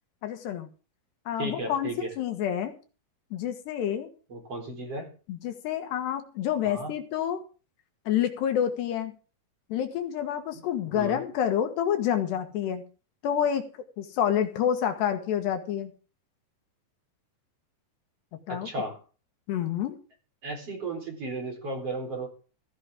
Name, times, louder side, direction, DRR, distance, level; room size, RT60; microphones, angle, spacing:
voice 1, 0.2-0.7 1.3-1.9 2.2-2.8 3.3-4.1 5.3-7.4 8.1-9.1 9.7-12.8 13.2-15.9 18.5-18.7 19.5-20.0, left 9 dB, 75° left, 7 dB, 3.6 m, -28 dB
voice 2, 1.4-2.1 4.3-5.1 6.6-6.9 10.9-11.2 18.5-19.0 20.4-22.3, right 2 dB, 35° right, 3 dB, 4.7 m, -34 dB
15.5 x 15.5 x 3.7 m, 0.36 s
omnidirectional pair, 5.1 m